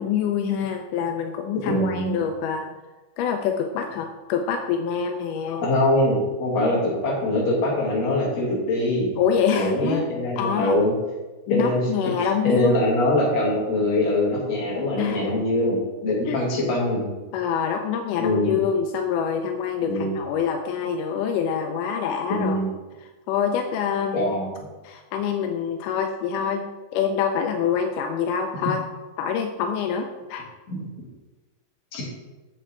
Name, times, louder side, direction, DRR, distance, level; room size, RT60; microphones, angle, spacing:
voice 1, 0.0-2.7 3.2-5.7 9.2-10.0 10.4-10.8 11.5-12.8 15.0-15.4 16.2-16.4 17.3-22.6 23.3-24.3 24.8-28.8 29.2-30.4, left 7 dB, 80° left, 5 dB, 1.9 m, -26 dB
voice 2, 1.7-2.2 5.6-9.2 9.5-10.9 11.5-11.8 12.4-17.1 18.2-18.6 19.9-20.1 22.3-22.7 24.1-24.7 30.7-30.9 31.9-32.0, left 1 dB, 50° left, -5 dB, 3.5 m, -23 dB
7.7 x 7.6 x 4.4 m, 1.2 s
omnidirectional pair, 4.2 m